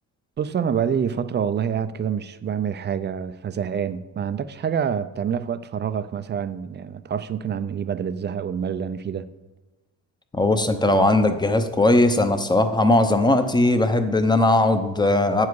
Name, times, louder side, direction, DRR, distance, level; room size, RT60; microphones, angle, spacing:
voice 1, 0.4-9.3, right 7 dB, 30° right, 13 dB, 0.4 m, -27 dB
voice 2, 10.4-15.5, left 2 dB, 10° left, 8 dB, 0.7 m, -19 dB
9.4 x 7.2 x 4.7 m, 1.1 s
cardioid pair, 115°, 36 cm